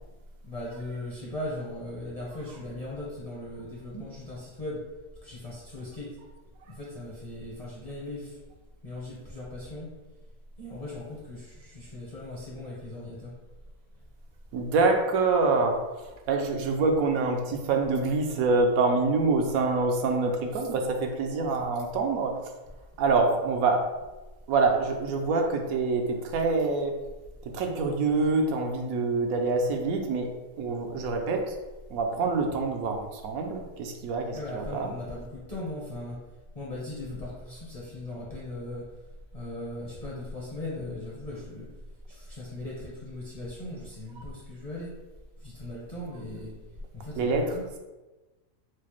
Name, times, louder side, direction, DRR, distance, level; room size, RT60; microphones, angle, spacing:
voice 1, 0.4-4.9 5.2-6.2 6.7-8.4 8.8-9.9 10.6-13.3 34.3-36.2 36.5-38.8 39.3-41.7 42.1-44.9 45.4-46.5 46.9-47.6, left 1 dB, 40° left, -6 dB, 0.6 m, -38 dB
voice 2, 14.5-15.8 16.3-22.3 23.0-23.8 24.5-27.0 27.5-30.3 30.6-31.6 31.9-34.9 47.1-47.8, right 3 dB, 90° right, 3 dB, 1.0 m, -26 dB
4.8 x 2.0 x 2.9 m, 1.1 s
omnidirectional pair, 1.4 m